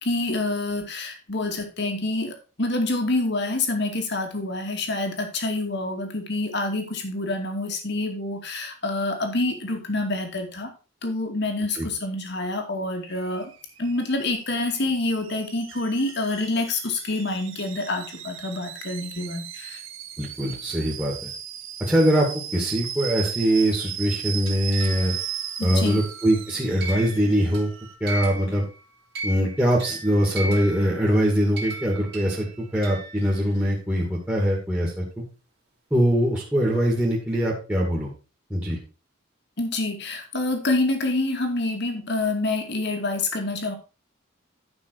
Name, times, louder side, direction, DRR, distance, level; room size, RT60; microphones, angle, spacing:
voice 1, 0.0-10.7 11.0-13.5 13.8-19.8 25.6-26.0 39.6-43.7, left 2 dB, 55° left, 4 dB, 2.3 m, -27 dB
Alarm / Boiling, 13.1-27.9, right 9 dB, 80° right, 1.4 m, -37 dB
voice 2, 20.2-21.1 21.8-22.3 22.5-25.1 25.6-27.7 28.0-28.7 29.2-35.1 35.9-38.1 38.5-38.8, equal, 10° right, -4 dB, 2.2 m, -22 dB
sound 1, 24.2-28.8 29.1-33.6, right 2 dB, 50° right, 2.6 m, -37 dB
11.0 x 5.8 x 4.7 m, 0.32 s
head